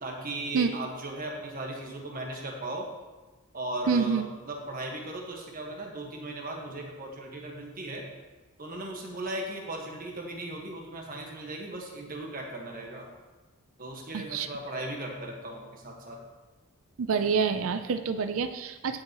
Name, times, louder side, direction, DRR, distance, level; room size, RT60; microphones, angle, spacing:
voice 1, 0.0-2.9 3.5-8.1 8.6-13.1 13.8-16.2, right 1 dB, 40° right, 0 dB, 1.4 m, -37 dB
voice 2, 3.9-4.2 14.1-14.5 17.0-19.0, right 5 dB, 70° right, 9 dB, 0.5 m, -27 dB
16.0 x 5.5 x 3.0 m, 1.2 s
head